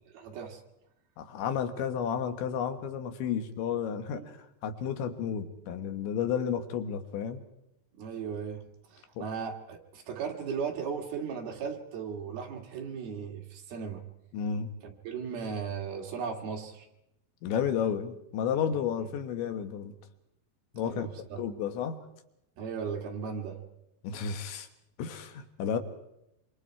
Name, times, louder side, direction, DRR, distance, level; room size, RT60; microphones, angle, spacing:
voice 1, 0.1-0.6 4.1-4.3 8.0-8.6 8.9-14.0 14.8-16.9 18.7-18.8 20.7-21.4 22.6-23.6, right 6 dB, 60° right, 2 dB, 4.0 m, -37 dB
voice 2, 1.2-7.4 9.2-9.3 14.3-14.7 17.4-20.0 20.8-21.1 21.4-22.0 24.0-24.7 25.0-25.8, left 7 dB, 85° left, 7 dB, 3.8 m, -32 dB
26.0 x 26.0 x 4.7 m, 0.84 s
omnidirectional pair, 5.1 m